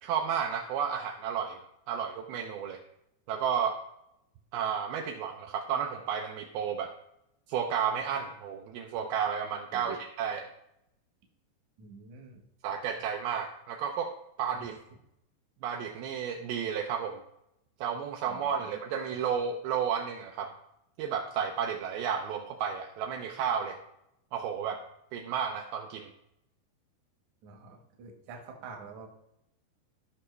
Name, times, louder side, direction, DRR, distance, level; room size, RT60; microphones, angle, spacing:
voice 1, 0.0-2.8 3.3-3.8 4.5-6.9 7.5-10.5 12.6-14.1 14.4-14.8 15.6-17.2 17.8-20.5 21.0-23.8 24.3-24.8 25.1-26.1, right 7 dB, 85° right, 3 dB, 2.1 m, -32 dB
voice 2, 9.7-10.0 11.8-12.4 14.5-14.7 18.3-18.7 27.4-29.1, right 4 dB, 65° right, 2 dB, 1.8 m, -48 dB
14.5 x 5.6 x 3.2 m, 0.82 s
omnidirectional pair, 5.1 m